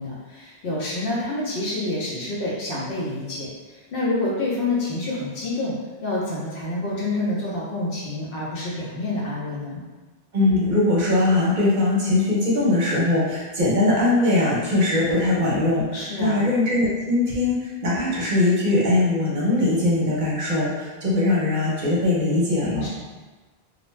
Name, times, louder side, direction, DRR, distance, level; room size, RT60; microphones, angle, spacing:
voice 1, 0.0-3.5 3.9-5.7 6.0-9.8 15.9-16.4 22.8-22.9, left 2 dB, 65° left, -6 dB, 0.9 m, -27 dB
voice 2, 10.3-22.9, left 2 dB, 55° right, -6 dB, 0.8 m, -21 dB
2.5 x 2.1 x 3.1 m, 1.2 s
omnidirectional pair, 1.1 m